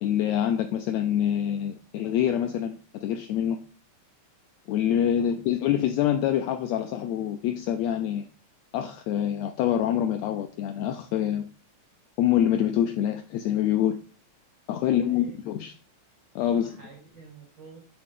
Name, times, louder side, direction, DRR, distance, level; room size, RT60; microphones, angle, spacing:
voice 1, 0.0-3.6 4.7-8.3 8.7-11.4 12.2-14.0 14.7-15.7 16.3-16.7, left 10 dB, 85° left, 6 dB, 1.5 m, -26 dB
voice 2, 5.2-5.5 14.8-15.4 16.5-17.8, right 4 dB, 70° right, 1 dB, 1.0 m, -49 dB
9.3 x 3.6 x 3.7 m, 0.39 s
omnidirectional pair, 3.6 m